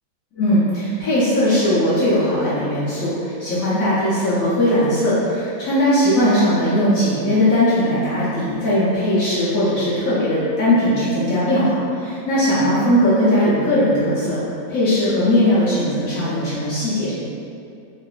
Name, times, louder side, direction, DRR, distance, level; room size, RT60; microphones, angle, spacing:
voice 1, 0.3-14.4 14.7-17.1, equal, 60° left, -10 dB, 1.0 m, -19 dB
3.7 x 2.5 x 2.4 m, 2.6 s
omnidirectional pair, 2.0 m